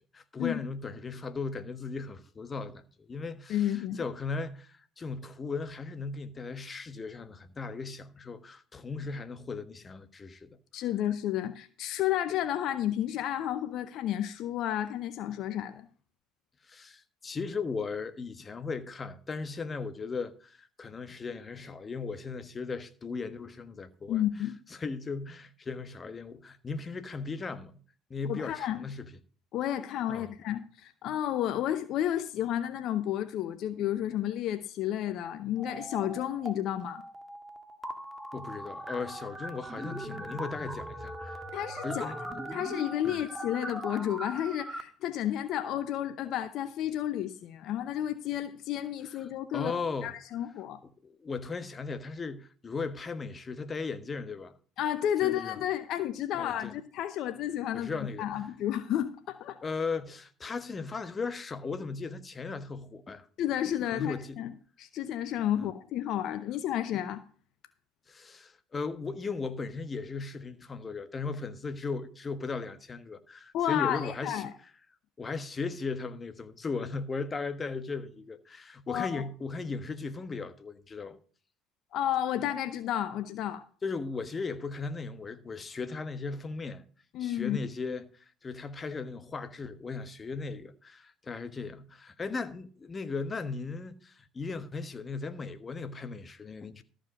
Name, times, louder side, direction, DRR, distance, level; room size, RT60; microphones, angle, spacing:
voice 1, 0.1-10.5 16.7-24.2 24.7-27.7 28.1-29.1 30.1-30.3 38.3-41.4 41.8-42.2 43.0-43.2 49.2-50.1 51.0-54.5 55.2-55.6 56.3-56.7 57.7-58.4 59.6-63.3 63.9-64.4 65.5-65.7 68.1-74.5 75.2-81.2 83.8-86.8 87.2-96.8, left 4 dB, 30° left, 1.3 m, -37 dB
voice 2, 3.5-4.0 10.7-15.9 24.1-24.5 28.2-28.8 29.5-37.0 41.5-42.1 42.5-49.7 50.0-50.8 54.8-59.6 63.4-64.5 64.8-67.2 73.5-74.5 78.9-79.2 81.9-83.6 87.1-87.6, left 11 dB, 60° left, 0.8 m, -31 dB
sound 1, 35.6-36.5 36.8-44.8, right 1 dB, 10° right, 1.8 m, -40 dB
13.5 x 5.2 x 6.5 m
hypercardioid pair, 70°, 0 cm